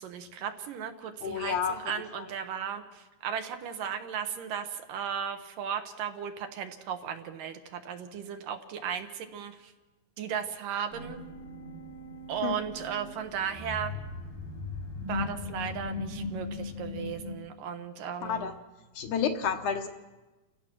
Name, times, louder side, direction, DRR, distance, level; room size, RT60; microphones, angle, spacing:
voice 1, 0.0-9.7 10.2-11.2 12.3-13.9 15.1-18.5, right 8 dB, 70° right, 6 dB, 2.7 m, -36 dB
voice 2, 1.2-1.8 12.4-12.5 18.2-18.5 19.0-19.9, left 7 dB, 70° left, 5 dB, 2.2 m, -29 dB
sound 1, 10.9-17.3, left 3 dB, 85° left, 4.9 m, -38 dB
29.5 x 15.5 x 6.1 m, 1.1 s
omnidirectional pair, 4.2 m